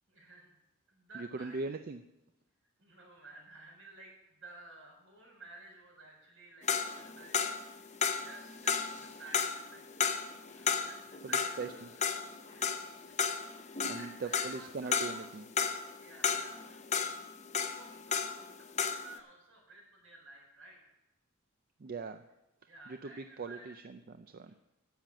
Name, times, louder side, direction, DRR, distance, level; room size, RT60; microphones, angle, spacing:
voice 1, 0.1-0.6 0.9-1.7 2.8-7.4 7.7-12.0 12.4-13.2 13.4-15.3 16.0-16.8 17.6-18.3 18.6-20.8 22.7-23.7 24.5-24.6, right 2 dB, 70° right, 0 dB, 4.5 m, -54 dB
voice 2, 1.1-2.0 11.2-11.9 13.9-15.4 21.8-22.2 22.9-24.6, right 4 dB, 45° right, 9 dB, 0.4 m, -41 dB
sound 1, 6.7-18.5 18.8-19.1, left 6 dB, 35° left, 0.7 m, -33 dB
10.5 x 7.5 x 7.3 m, 0.92 s
head